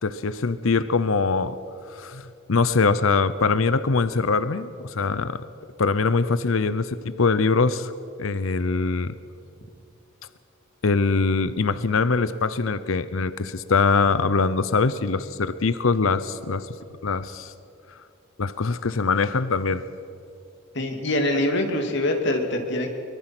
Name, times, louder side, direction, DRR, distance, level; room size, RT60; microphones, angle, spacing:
voice 1, 0.0-1.6 1.9-5.4 5.8-7.9 8.2-9.1 10.8-16.7 17.0-17.5 18.4-19.8, left 4 dB, 80° left, 14 dB, 0.7 m, -23 dB
voice 2, 20.7-22.9, left 1 dB, 60° left, 3 dB, 2.7 m, -24 dB
24.0 x 23.0 x 6.1 m, 2.5 s
head